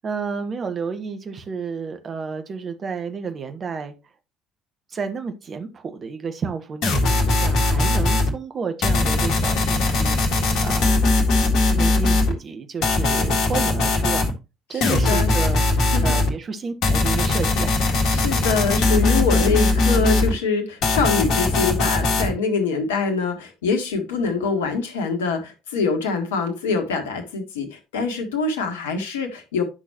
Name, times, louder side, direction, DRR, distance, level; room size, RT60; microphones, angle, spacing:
voice 1, 0.0-3.9 4.9-11.0 11.7-14.3 14.7-15.6 16.0-17.7, right 5 dB, 35° right, 1.2 m, -31 dB
sound 1, 6.8-8.3 8.8-12.3 12.8-14.3 14.8-16.3 16.8-20.3 20.8-22.3, left 2 dB, 50° left, 1.9 m, -20 dB
voice 2, 14.7-15.3 15.9-16.2 18.1-29.6, left 4 dB, 70° left, 1.6 m, -24 dB
10.0 x 6.2 x 2.9 m
figure-of-eight pair, 55°, 0 cm